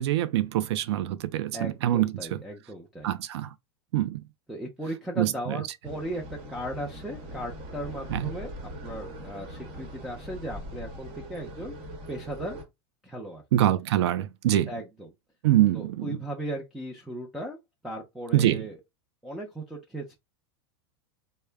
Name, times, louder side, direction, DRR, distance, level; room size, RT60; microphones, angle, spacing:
voice 1, 0.0-2.4 3.0-3.5 3.9-4.2 5.2-5.6 8.1-8.2 13.5-14.7 15.4-16.2 18.3-18.6, right 13 dB, 80° right, 0.4 m, -25 dB
voice 2, 1.5-3.1 4.5-8.5 8.8-11.7 12.1-12.6 13.0-13.4 14.7-15.1 15.7-17.6 17.8-18.8 19.2-20.2, right 1 dB, ahead, 0.6 m, -37 dB
sound 1, 5.8-12.6, equal, 40° right, 1.2 m, -41 dB
3.5 x 2.2 x 3.3 m
supercardioid pair, 120°, 14 cm